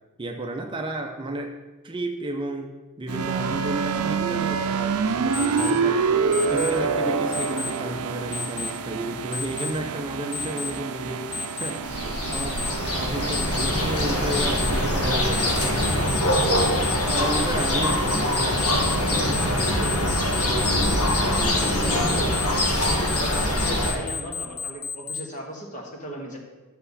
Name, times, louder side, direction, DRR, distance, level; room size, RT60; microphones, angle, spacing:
voice 1, 0.2-1.6 1.8-6.0 6.5-12.7 13.0-18.6 19.0-20.2 21.1-21.8, right 1 dB, 20° right, 3 dB, 0.6 m, -32 dB
sound 1, 3.1-16.2, right 5 dB, 75° right, 0.6 m, -27 dB
Alarm, 5.3-5.7 6.3-6.7 7.3-7.7 8.3-8.7 9.3-9.7 10.3-10.7 11.3-11.7 12.3-12.7 13.3-13.7 14.3-14.7 15.3-25.2, left 6 dB, 65° left, 0.7 m, -32 dB
sound 2, 11.8-23.9, left 1 dB, 80° left, 1.7 m, -23 dB
voice 2, 21.6-22.3 22.8-26.4, equal, 35° left, 0 dB, 1.8 m, -36 dB
11.5 x 6.8 x 4.1 m, 1.2 s
head